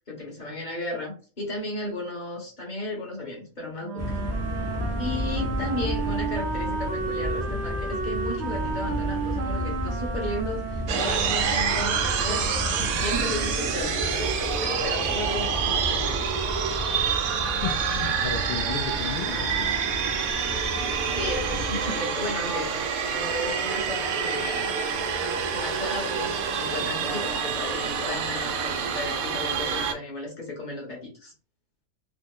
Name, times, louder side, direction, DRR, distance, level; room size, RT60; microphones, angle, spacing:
voice 1, 0.1-4.2 5.0-16.3 21.2-22.7 23.1-24.8 25.5-31.3, left 2 dB, 35° left, -1 dB, 1.0 m, -34 dB
Wind instrument woodwind instrument, 3.8-12.1, right 5 dB, 65° right, 0.7 m, -33 dB
sound 1, 4.0-21.9, left 1 dB, 15° left, 0.5 m, -33 dB
sound 2, 10.9-29.9, right 6 dB, 80° right, 1.1 m, -27 dB
voice 2, 17.3-19.7, left 6 dB, 75° left, 3 dB, 0.5 m, -34 dB
3.1 x 2.0 x 3.6 m, 0.37 s
omnidirectional pair, 1.5 m